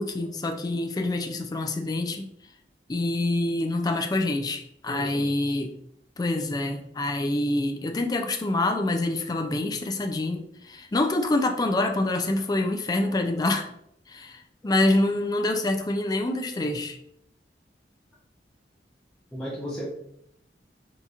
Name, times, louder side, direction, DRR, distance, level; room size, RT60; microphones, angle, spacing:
voice 1, 0.0-2.3 2.9-5.8 6.2-13.7 14.1-17.0, left 2 dB, 20° left, 4 dB, 0.4 m, -26 dB
voice 2, 4.9-5.6 12.4-12.5 14.6-14.7 19.3-19.9, equal, 5° left, -8 dB, 0.7 m, -36 dB
4.0 x 2.9 x 2.4 m, 0.73 s
head